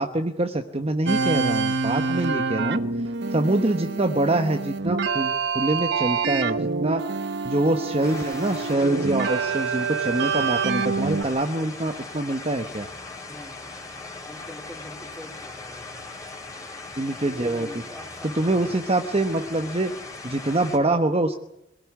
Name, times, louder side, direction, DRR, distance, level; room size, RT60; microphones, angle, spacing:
voice 1, 0.0-2.8 3.3-7.0 7.4-12.9 17.0-17.7 18.3-19.9 20.2-21.4, right 2 dB, 30° right, 6 dB, 1.1 m, -25 dB
sound 1, 1.1-11.2, right 4 dB, 65° right, 1.1 m, -26 dB
sound 2, 8.0-20.8, left 3 dB, 20° left, 4.0 m, -39 dB
voice 2, 13.3-13.6 14.2-16.0 17.1-18.7, equal, 5° left, 3 dB, 3.6 m, -44 dB
23.0 x 17.0 x 9.6 m, 0.85 s
head